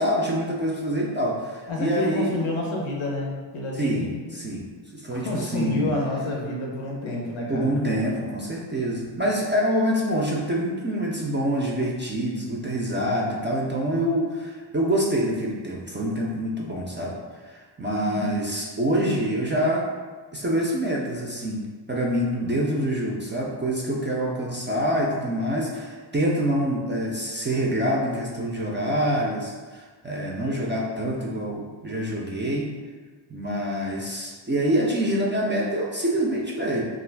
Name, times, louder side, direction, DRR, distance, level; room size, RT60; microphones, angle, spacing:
voice 1, 0.0-2.4 3.8-4.0 4.3-4.6 4.9-5.9 7.5-17.1 17.4-19.8 20.3-21.6 21.9-32.7 33.3-36.9, equal, 25° right, -3 dB, 0.4 m, -26 dB
voice 2, 1.7-4.2 5.1-7.7 18.0-18.4, left 2 dB, 90° left, -2 dB, 0.7 m, -29 dB
2.4 x 2.3 x 3.3 m, 1.4 s
cardioid pair, 60°, 48 cm